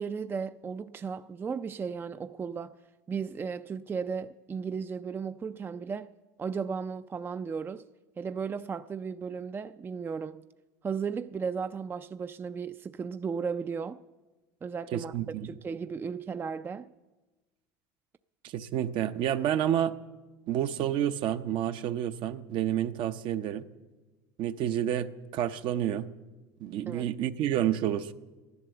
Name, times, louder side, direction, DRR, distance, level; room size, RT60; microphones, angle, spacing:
voice 1, 0.0-2.8 3.1-6.1 6.4-7.9 8.2-10.4 10.8-14.0 14.6-16.9 26.9-27.0, right 6 dB, 25° right, 0.4 m, -35 dB
voice 2, 14.9-15.5 18.4-19.9 20.5-23.7 24.4-26.1 26.6-28.1, right 11 dB, 60° right, 0.7 m, -29 dB
13.5 x 11.0 x 6.9 m
supercardioid pair, 90°, 10 cm